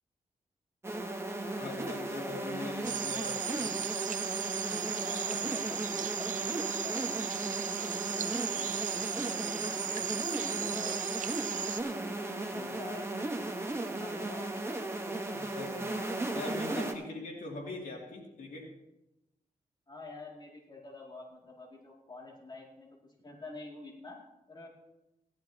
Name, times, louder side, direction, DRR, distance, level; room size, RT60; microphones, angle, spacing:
sound 1, 0.8-16.9, right 2 dB, 20° right, 1.3 m, -36 dB
voice 1, 1.6-3.7 15.3-15.9 16.3-18.7, left 2 dB, 70° left, -1 dB, 2.7 m, -41 dB
sound 2, 2.8-11.8, right 8 dB, 60° right, 0.6 m, -36 dB
voice 2, 4.7-7.1 8.2-11.1 11.6-13.3 14.0-14.9 19.9-24.2 24.5-24.7, left 3 dB, 30° left, -2 dB, 2.6 m, -48 dB
17.0 x 11.5 x 2.9 m, 0.92 s
wide cardioid pair, 120°, 15 cm